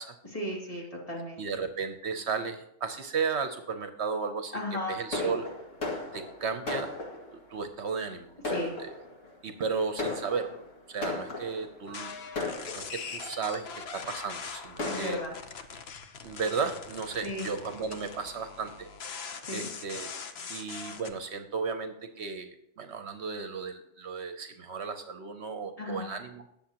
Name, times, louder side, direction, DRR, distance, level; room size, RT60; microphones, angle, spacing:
voice 1, 0.3-1.6 4.5-5.4 8.5-8.7 14.8-15.4 17.2-17.5 19.4-19.7 25.8-26.1, left 1 dB, 30° left, -2 dB, 2.6 m, -35 dB
voice 2, 1.4-4.6 4.9-5.5 6.1-6.9 7.5-8.4 8.8-8.9 9.4-10.6 10.9-12.1 12.7-15.2 16.2-18.9 19.5-20.1 20.5-22.5 22.8-26.4, right 5 dB, 65° right, 8 dB, 1.0 m, -34 dB
Fireworks, 5.1-7.5 8.1-8.2 8.4-9.3 10.0-11.7 12.3-13.3 14.0-14.1 14.4-14.5 14.8-15.2, left 2 dB, 80° left, 2.2 m, -36 dB
sound 1, 11.9-21.1, left 5 dB, 60° left, 1.0 m, -42 dB
19.0 x 7.2 x 2.9 m, 0.78 s
omnidirectional pair, 1.3 m